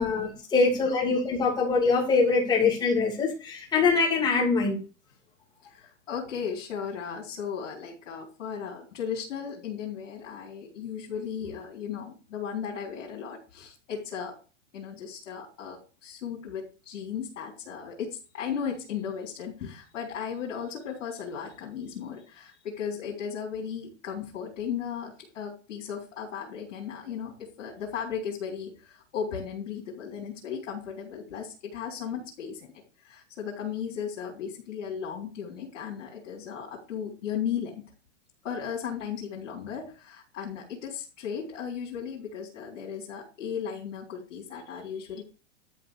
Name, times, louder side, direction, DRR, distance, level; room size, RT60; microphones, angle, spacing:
voice 1, 0.0-4.8, left 4 dB, 10° left, -1 dB, 2.7 m, -24 dB
voice 2, 5.7-14.4 14.7-32.7 33.0-37.8 38.4-45.2, left 7 dB, 80° left, -2 dB, 4.0 m, -36 dB
12.5 x 4.2 x 6.5 m, 0.34 s
supercardioid pair, 170°, 37 cm